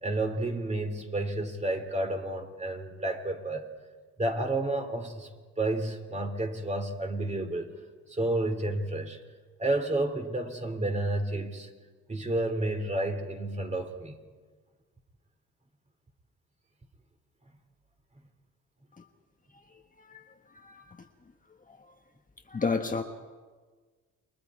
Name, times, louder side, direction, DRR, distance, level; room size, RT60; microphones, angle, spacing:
voice 1, 0.0-3.7 4.2-5.3 5.6-7.7 8.1-9.2 9.6-11.7 12.1-14.2, right 2 dB, 20° right, 5 dB, 3.0 m, -30 dB
voice 2, 20.6-21.0 21.7-21.8 22.5-23.0, left 4 dB, 25° left, 4 dB, 1.4 m, -31 dB
29.0 x 22.5 x 4.8 m, 1.4 s
cardioid pair, 90°, 30 cm